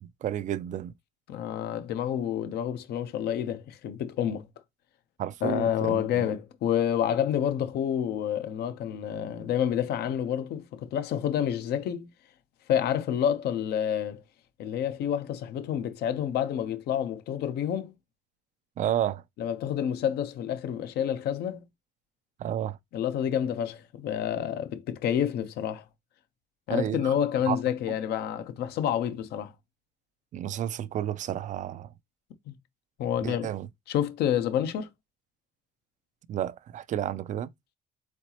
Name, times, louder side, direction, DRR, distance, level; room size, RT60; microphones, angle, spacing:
voice 1, 0.0-0.9 5.2-6.3 18.8-19.2 22.4-22.8 26.7-27.1 27.5-27.6 30.3-31.9 33.2-33.7 36.3-37.5, right 11 dB, 45° right, 0.4 m, -31 dB
voice 2, 1.3-4.5 5.4-12.1 12.7-14.2 14.6-17.9 19.4-21.6 22.9-25.8 26.7-29.5 32.5-32.6 33.0-33.5 33.9-34.9, left 9 dB, 75° left, 0.8 m, -28 dB
4.3 x 4.0 x 2.9 m
cardioid pair, 110°, 17 cm